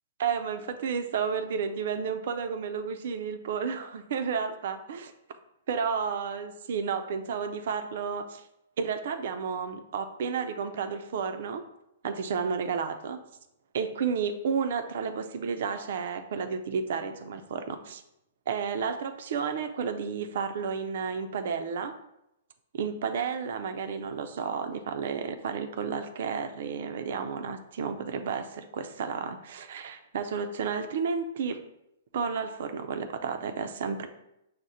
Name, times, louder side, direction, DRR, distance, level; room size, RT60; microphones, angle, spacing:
voice 1, 0.2-5.1 5.7-8.4 8.8-11.6 12.0-13.2 13.7-18.0 18.5-21.9 22.7-31.6 32.1-34.1, right 6 dB, 65° right, 8 dB, 0.4 m, -32 dB
4.9 x 2.1 x 4.1 m, 0.85 s
hypercardioid pair, 135°, 0 cm